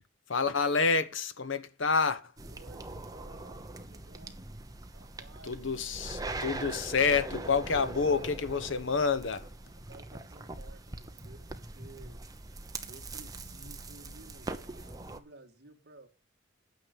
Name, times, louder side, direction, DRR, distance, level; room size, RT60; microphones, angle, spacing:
voice 1, 0.3-2.3 5.4-9.5, left 5 dB, 60° left, 1.0 m, -28 dB
sound 1, 2.4-15.2, right 2 dB, 15° right, 0.9 m, -42 dB
voice 2, 2.5-4.5 4.9-5.6 6.0-6.1 9.9-12.3 12.9-16.1, right 2 dB, 50° right, 1.9 m, -55 dB
9.4 x 6.4 x 8.1 m
head